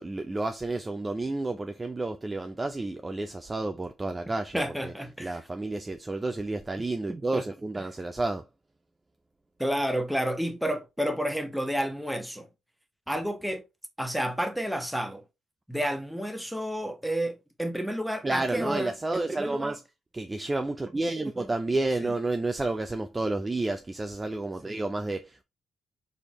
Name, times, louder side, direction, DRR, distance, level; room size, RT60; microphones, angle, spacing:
voice 1, 0.0-4.9 5.2-8.4 18.2-19.8 20.1-25.4, right 2 dB, 20° right, 0.4 m, -30 dB
voice 2, 4.5-5.3 9.6-12.5 13.1-13.6 14.0-15.2 15.7-18.9 22.0-22.1, equal, ahead, 0.9 m, -30 dB
4.3 x 3.4 x 3.0 m
cardioid pair, 90°, 0 cm